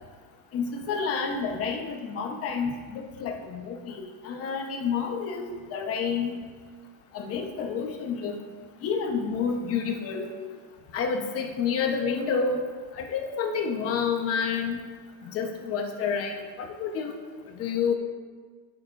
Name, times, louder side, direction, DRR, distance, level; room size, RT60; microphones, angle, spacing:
voice 1, 0.5-6.4 7.1-8.4 8.8-10.3 10.9-12.6 12.9-14.8 15.2-17.2 17.6-17.9, left 6 dB, 35° left, 3 dB, 1.0 m, -29 dB
16.5 x 6.8 x 2.6 m, 1.5 s
cardioid pair, 170°, 40 cm